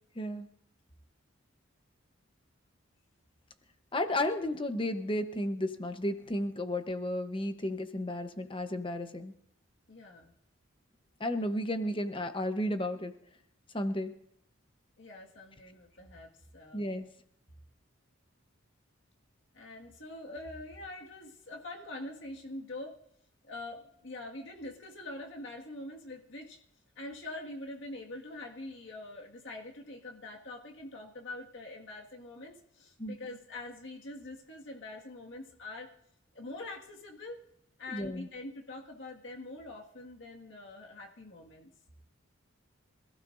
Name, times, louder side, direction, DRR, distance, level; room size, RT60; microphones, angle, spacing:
voice 1, 0.2-0.5 3.9-9.3 11.2-13.1 13.7-14.2 16.7-17.1 33.0-33.2 37.9-38.3, left 1 dB, 25° left, 8 dB, 0.9 m, -33 dB
voice 2, 9.9-10.3 15.0-17.1 19.5-23.0 23.4-26.6 27.0-35.9 36.3-37.4 37.8-41.7, left 2 dB, 65° left, 1 dB, 1.9 m, -44 dB
26.0 x 16.0 x 2.6 m, 0.72 s
head